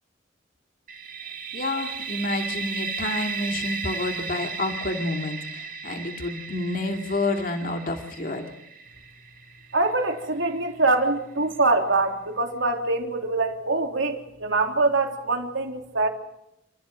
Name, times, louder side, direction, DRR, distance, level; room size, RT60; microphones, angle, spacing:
sound 1, 0.9-10.6, right 4 dB, 45° right, 2.2 m, -35 dB
voice 1, 1.5-8.5, left 2 dB, 45° left, 4 dB, 2.4 m, -29 dB
voice 2, 9.7-16.1, right 3 dB, 80° right, 3 dB, 3.4 m, -24 dB
28.5 x 15.0 x 7.7 m, 0.83 s
head